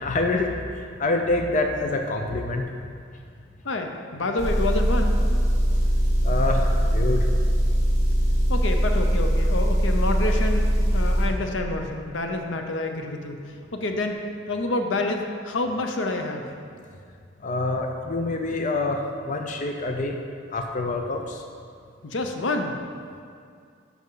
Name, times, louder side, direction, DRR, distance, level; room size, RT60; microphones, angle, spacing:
voice 1, 0.0-0.5 1.0-2.6 6.2-7.3 17.4-20.2 20.5-21.4, left 2 dB, 40° left, 3 dB, 0.5 m, -26 dB
voice 2, 3.6-5.2 8.5-14.2 14.5-16.5 22.0-22.8, left 2 dB, 80° left, 4 dB, 0.8 m, -28 dB
Motor vehicle (road) / Engine, 4.4-11.3, equal, 15° left, 2.1 m, -21 dB
11.0 x 6.1 x 3.9 m, 2.3 s
head